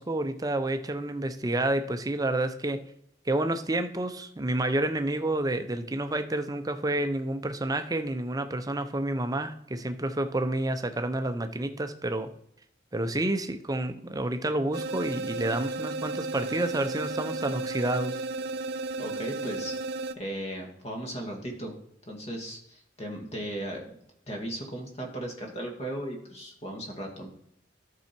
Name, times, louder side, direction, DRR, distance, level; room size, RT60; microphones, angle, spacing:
voice 1, 0.0-2.9 3.3-12.3 12.9-18.3, right 1 dB, 20° right, 8 dB, 0.7 m, -29 dB
sound 1, 14.7-20.1, right 3 dB, 60° right, 0.6 m, -34 dB
voice 2, 19.0-19.8 20.2-21.7 22.1-23.8 24.3-27.3, right 1 dB, 35° left, 2 dB, 2.0 m, -36 dB
12.5 x 5.6 x 4.5 m, 0.73 s
head